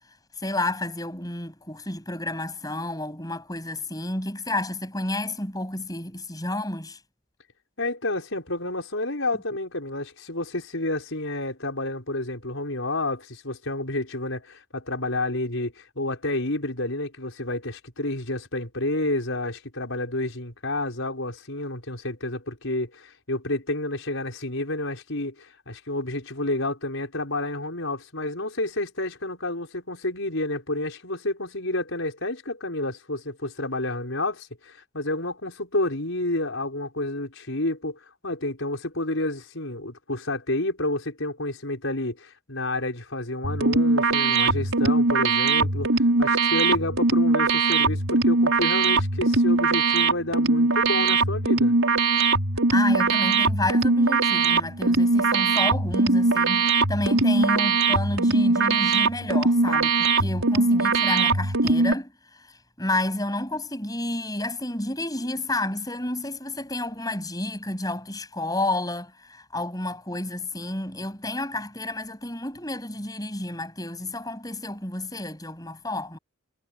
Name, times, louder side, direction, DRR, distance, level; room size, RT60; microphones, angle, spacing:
voice 1, 0.4-7.0 52.7-76.2, left 1 dB, 15° left, 7.9 m, -30 dB
voice 2, 7.8-51.7, left 2 dB, 65° left, 5.4 m, -30 dB
sound 1, 43.4-61.9, right 3 dB, 75° right, 5.4 m, -21 dB
head